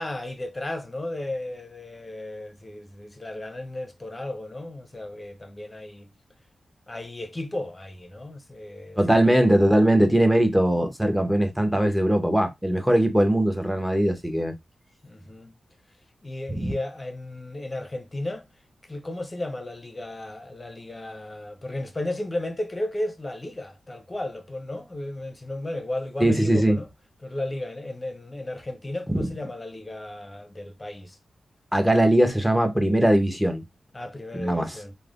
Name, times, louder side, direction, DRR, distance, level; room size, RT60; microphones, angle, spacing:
voice 1, 0.0-6.1 6.9-9.3 15.0-15.6 16.2-18.5 18.8-26.9 27.2-31.2 33.9-34.9, left 1 dB, 25° left, 0.6 m, -34 dB
voice 2, 9.0-14.5 16.5-16.7 26.2-26.8 29.1-29.3 31.7-33.6 34.4-34.8, right 1 dB, 5° right, 0.8 m, -20 dB
3.1 x 2.1 x 2.5 m
cardioid pair, 55°, 0 cm